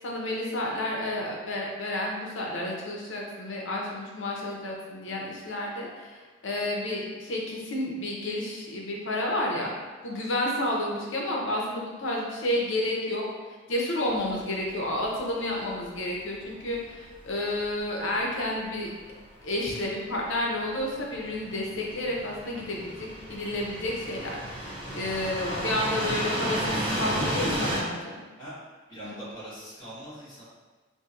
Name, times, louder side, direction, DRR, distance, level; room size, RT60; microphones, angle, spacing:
voice 1, 0.0-9.7 10.0-13.3 13.7-18.9 19.4-28.2 29.0-29.2, left 1 dB, 75° left, -2 dB, 0.7 m, -31 dB
sound 1, 14.1-27.8, equal, 25° right, 0.5 m, -34 dB
voice 2, 28.9-30.4, right 1 dB, 20° left, -12 dB, 1.5 m, -44 dB
4.3 x 2.6 x 2.5 m, 1.3 s
head